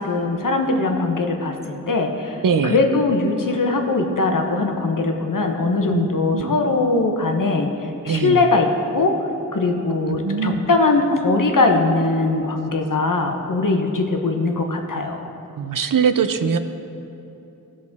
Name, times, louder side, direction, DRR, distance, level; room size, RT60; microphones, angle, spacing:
voice 1, 0.0-2.4 2.6-7.7 8.0-9.2 9.5-15.3, left 3 dB, 70° left, 4 dB, 1.0 m, -20 dB
voice 2, 2.4-2.8 5.9-6.5 8.0-8.4 10.1-10.6 15.6-16.6, right 6 dB, 70° right, 10 dB, 0.6 m, -22 dB
16.5 x 6.3 x 3.6 m, 2.9 s
wide cardioid pair, 70°, 34 cm